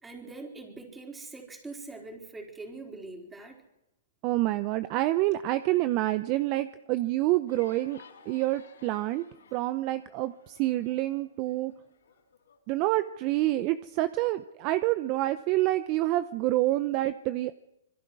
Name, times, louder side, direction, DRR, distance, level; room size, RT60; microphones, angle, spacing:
voice 1, 0.0-3.6, right 3 dB, 10° right, 1 dB, 4.2 m, -43 dB
voice 2, 4.2-9.2 9.5-11.7 12.7-17.5, right 16 dB, 35° right, 13 dB, 0.7 m, -27 dB
sound 1, 7.5-12.6, left 6 dB, 80° left, 6.6 m, -56 dB
26.5 x 21.5 x 4.8 m, 0.88 s
hypercardioid pair, 135°, 0 cm